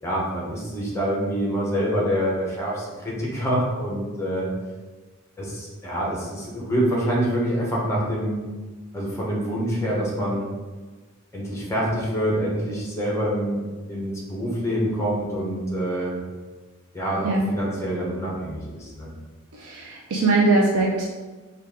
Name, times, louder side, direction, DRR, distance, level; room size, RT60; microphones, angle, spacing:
voice 1, 0.0-4.5 5.4-8.4 8.9-10.5 11.3-13.6 13.9-16.2 16.9-19.1, equal, 10° left, -4 dB, 0.9 m, -26 dB
voice 2, 17.2-17.5 19.5-21.0, right 3 dB, 75° right, -3 dB, 0.5 m, -21 dB
4.3 x 2.5 x 3.6 m, 1.3 s
head